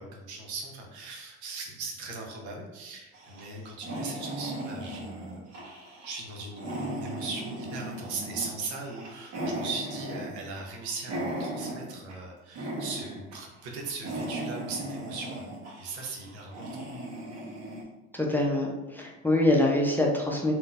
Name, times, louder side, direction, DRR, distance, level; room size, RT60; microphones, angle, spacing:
voice 1, 0.0-15.4 15.8-16.8, right 3 dB, 75° right, 0 dB, 0.8 m, -39 dB
sound 1, 3.1-12.2 12.5-13.4 13.6-17.8, right 1 dB, 50° right, 1.2 m, -37 dB
voice 2, 18.1-20.5, left 1 dB, 5° left, -1 dB, 0.6 m, -25 dB
3.6 x 2.6 x 2.5 m, 1.1 s
hypercardioid pair, 70°, 33 cm